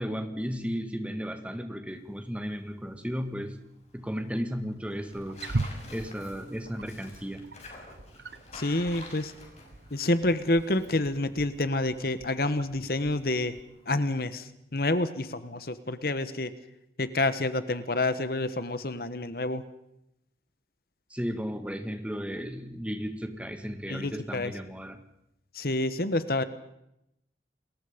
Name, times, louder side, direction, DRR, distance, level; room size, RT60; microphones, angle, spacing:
voice 1, 0.0-3.6 3.9-5.4 5.9-7.4 21.1-25.0, equal, 5° right, 7 dB, 2.0 m, -34 dB
Tearing, 1.9-14.1, left 2 dB, 40° left, 6.4 m, -51 dB
Wild animals, 5.1-13.6, right 2 dB, 70° right, 1.0 m, -40 dB
voice 2, 8.5-9.3 9.9-13.6 13.9-16.5 17.0-19.6 23.9-24.5 25.5-26.4, left 2 dB, 55° left, 13 dB, 1.3 m, -28 dB
29.5 x 21.5 x 5.3 m, 0.81 s
head